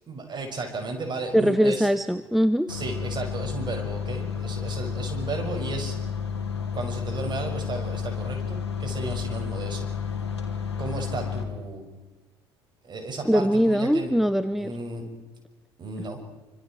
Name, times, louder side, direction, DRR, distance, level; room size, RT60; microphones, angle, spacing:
voice 1, 0.1-1.9 2.7-6.0 6.7-9.9 10.8-11.9 12.8-14.1 14.6-15.0 15.8-16.2, right 3 dB, 35° right, 4 dB, 6.0 m, -34 dB
voice 2, 1.3-2.7 13.3-14.7, equal, ahead, 13 dB, 0.8 m, -21 dB
sound 1, 2.7-11.4, left 6 dB, 80° left, 2.4 m, -31 dB
27.0 x 25.5 x 4.5 m, 1.2 s
figure-of-eight pair, 60°, 14 cm